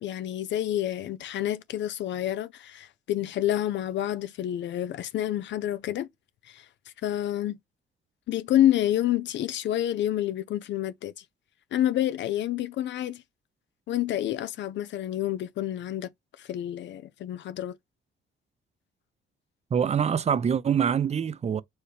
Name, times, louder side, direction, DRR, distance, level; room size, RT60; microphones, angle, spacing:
voice 1, 0.0-6.1 6.5-6.7 7.0-7.6 8.3-11.2 11.7-13.2 13.9-16.1 16.4-17.8, left 12 dB, 65° left, 0.4 m, -28 dB
voice 2, 19.7-21.6, right 7 dB, 35° right, 0.5 m, -25 dB
4.6 x 3.1 x 3.3 m
cardioid pair, 90°, 20 cm